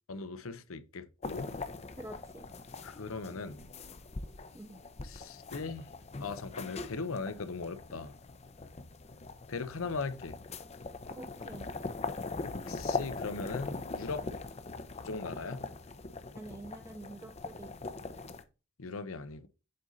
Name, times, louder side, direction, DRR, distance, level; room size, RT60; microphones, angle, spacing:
voice 1, 0.1-1.5 2.8-3.7 5.0-5.9 6.2-8.1 9.5-10.4 12.4-14.3 15.0-15.7 18.8-19.5, left 4 dB, 90° left, 0.8 m, -39 dB
sound 1, 1.2-18.4, left 3 dB, 30° left, 0.6 m, -41 dB
voice 2, 2.0-2.5 4.5-4.8 11.2-11.7 16.4-17.7, right 2 dB, 15° right, 0.4 m, -47 dB
7.8 x 4.0 x 4.0 m
head